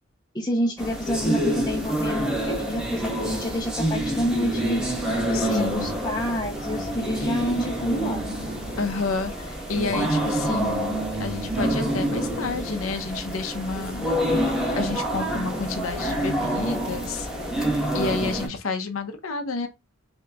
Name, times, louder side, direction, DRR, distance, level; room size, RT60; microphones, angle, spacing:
voice 1, 0.3-4.9 5.3-8.2, equal, 20° left, 0.6 m, -28 dB
sound 1, 0.8-18.5, right 1 dB, 5° right, 1.2 m, -27 dB
voice 2, 5.3-5.9 8.8-14.1 14.7-17.3 17.9-19.7, left 3 dB, 85° left, 0.7 m, -30 dB
sound 2, 5.7-12.2, right 2 dB, 70° right, 2.1 m, -44 dB
6.1 x 2.8 x 2.3 m
head